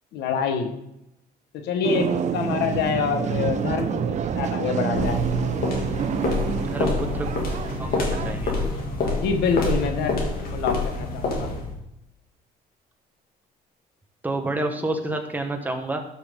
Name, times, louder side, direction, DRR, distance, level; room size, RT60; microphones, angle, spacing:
voice 1, 0.1-0.7 1.5-2.1 2.3-5.2 9.1-11.5, left 6 dB, 80° left, 5 dB, 1.4 m, -26 dB
sound 1, 1.8-8.4, right 7 dB, 45° right, 0.7 m, -27 dB
sound 2, 4.9-11.8, left 3 dB, 60° left, 2.3 m, -27 dB
voice 2, 6.6-7.3 7.8-8.5 14.2-16.0, right 2 dB, 10° right, 3 dB, 1.5 m, -29 dB
12.5 x 5.8 x 3.8 m, 0.85 s
cardioid pair, 110°, 17 cm